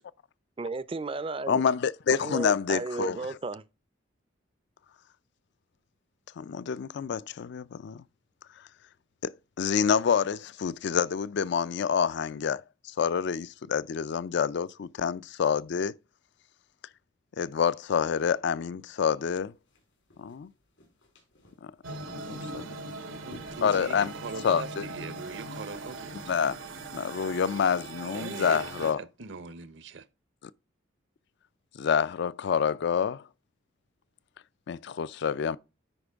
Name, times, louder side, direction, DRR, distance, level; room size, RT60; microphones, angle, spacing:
voice 1, 0.6-1.6 2.2-3.6, right 3 dB, 30° right, 0.4 m, -34 dB
voice 2, 1.5-3.3 6.4-8.0 9.2-15.9 17.4-19.5 20.2-20.5 22.1-22.6 23.6-24.1 24.4-24.8 26.3-26.6 26.9-29.0 31.7-33.2 34.7-35.6, left 7 dB, 60° left, 0.4 m, -27 dB
sound 1, 19.4-24.8, left 1 dB, 85° left, 3.9 m, -57 dB
sound 2, 21.8-28.9, right 3 dB, 90° right, 1.2 m, -40 dB
voice 3, 23.1-26.1 28.1-30.1, right 4 dB, 65° right, 0.8 m, -41 dB
10.0 x 4.5 x 3.4 m
head